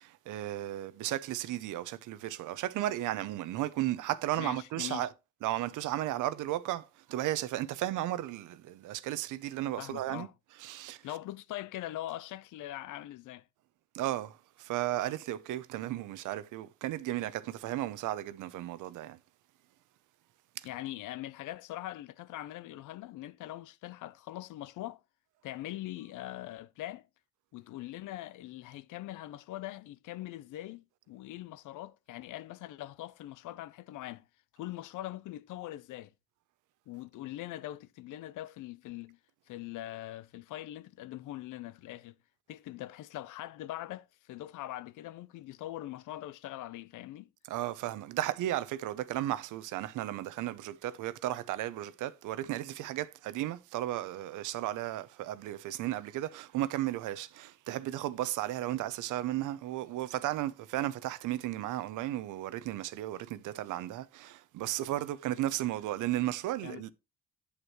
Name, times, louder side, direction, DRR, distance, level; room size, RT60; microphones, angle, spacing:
voice 1, 0.0-5.1 5.4-10.3 10.6-11.0 13.9-19.2 20.6-20.7 47.5-66.9, right 14 dB, 90° right, 0.7 m, -34 dB
voice 2, 4.4-5.1 9.8-10.3 11.0-13.4 20.6-25.0 25.4-27.1 27.5-34.3 34.5-36.1 36.9-39.2 39.5-42.1 42.5-47.3 66.6-66.9, left 15 dB, 80° left, 0.6 m, -42 dB
8.2 x 8.0 x 3.1 m
cardioid pair, 90°, 30 cm